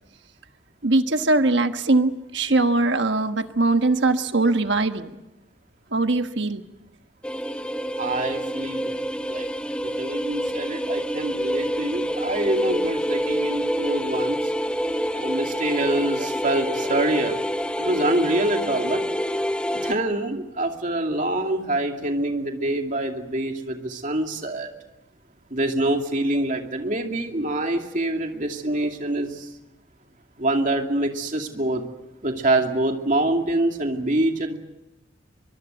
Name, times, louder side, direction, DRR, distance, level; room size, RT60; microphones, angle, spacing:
voice 1, 0.8-5.1 5.9-6.6 14.9-15.3, right 2 dB, 65° right, 8 dB, 1.3 m, -21 dB
sound 1, 7.2-19.9, equal, 5° left, 0.9 m, -27 dB
voice 2, 8.0-8.9 9.3-9.5 9.8-14.5 15.2-17.4 17.8-19.0 19.8-24.7 25.5-29.5 30.4-31.8 32.2-34.6, right 1 dB, 40° right, 3 dB, 2.5 m, -25 dB
24.0 x 24.0 x 8.1 m, 0.95 s
head